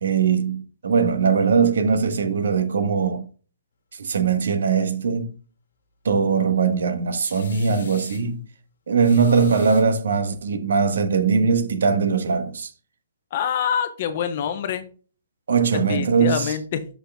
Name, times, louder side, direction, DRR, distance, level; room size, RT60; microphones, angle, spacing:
voice 1, 0.0-3.3 4.0-5.3 6.0-8.4 8.9-12.7 15.5-16.6, right 5 dB, 70° right, 1.2 m, -21 dB
sound 1, 7.2-8.3 9.0-10.3, left 6 dB, 70° left, 1.4 m, -44 dB
voice 2, 13.3-14.8 15.9-16.9, left 8 dB, 30° left, 0.7 m, -25 dB
6.2 x 5.7 x 3.4 m
hypercardioid pair, 180°, 0 cm